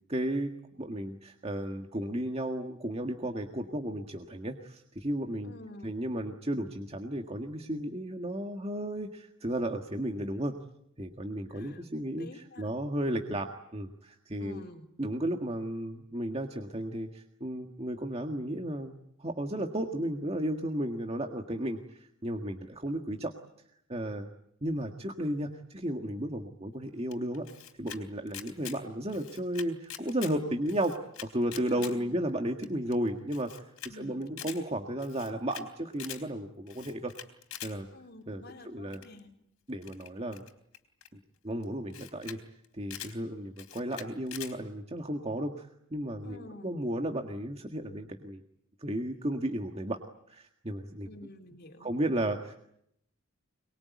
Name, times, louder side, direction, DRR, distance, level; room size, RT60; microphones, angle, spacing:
voice 1, 0.1-0.5 0.8-5.5 5.8-10.5 11.0-14.6 15.0-23.3 23.9-24.3 24.6-27.5 27.8-30.9 31.2-37.1 37.6-37.9 38.3-39.0 39.7-40.4 41.4-42.4 42.7-48.4 48.8-50.0 50.3-51.1 51.8-52.5, right 1 dB, 30° right, 3 dB, 1.7 m, -34 dB
voice 2, 5.4-6.0 11.5-12.7 14.4-14.9 31.7-32.2 33.9-34.4 37.9-39.3 46.2-46.8 51.1-51.9, left 1 dB, 50° left, 3 dB, 3.7 m, -49 dB
Camera, 27.1-28.0 28.3-28.8 29.1-30.3 30.7-31.9 32.3-32.4 32.6-32.7 32.9-33.0 33.3-33.9 34.2-34.6 35.0-35.6 35.9-36.2 36.7-37.7 38.9-39.2 39.8-41.1 41.6-41.7 41.9-42.4 42.6-43.1 43.6-44.5, left 11 dB, 80° left, 3.8 m, -44 dB
24.5 x 22.5 x 9.5 m, 0.75 s
head